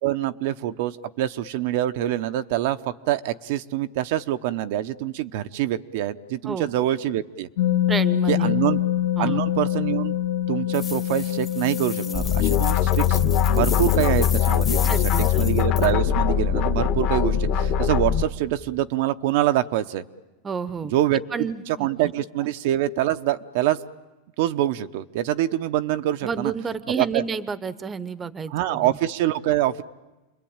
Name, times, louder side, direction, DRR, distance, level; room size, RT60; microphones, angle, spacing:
voice 1, 0.0-7.5 8.3-8.8 9.2-10.1 10.5-13.2 13.5-20.0 20.9-21.2 21.7-23.8 24.4-26.5 27.0-27.2 28.5-29.8, right 13 dB, 60° right, 10 dB, 0.9 m, -25 dB
sound 1, 7.6-18.1, left 12 dB, 85° left, 2.2 m, -27 dB
voice 2, 7.9-8.5 9.2-9.4 14.8-15.5 20.4-20.9 21.3-22.1 26.2-28.9, right 5 dB, 15° right, 15 dB, 0.9 m, -30 dB
sound 2, 10.7-15.9, left 6 dB, 20° left, 1.3 m, -35 dB
sound 3, 12.1-18.2, left 9 dB, 45° left, 1.6 m, -21 dB
28.0 x 22.0 x 8.9 m, 1.1 s
supercardioid pair, 140°, 0 cm